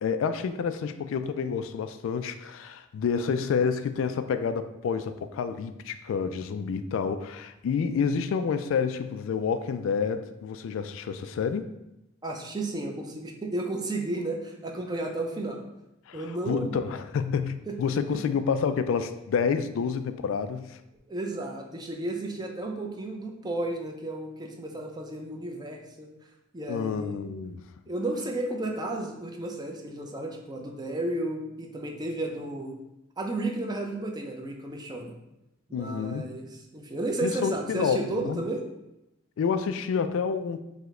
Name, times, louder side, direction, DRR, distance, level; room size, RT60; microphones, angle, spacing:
voice 1, 0.0-11.7 16.1-20.8 26.7-27.6 35.7-36.4 37.2-38.4 39.4-40.6, left 6 dB, 75° left, 0.3 m, -29 dB
voice 2, 12.2-15.6 16.1-16.8 17.7-17.8 21.1-26.1 26.5-27.2 27.9-32.8 33.2-35.1 35.7-38.6, right 2 dB, 20° right, 0.5 m, -33 dB
4.8 x 2.2 x 3.6 m
head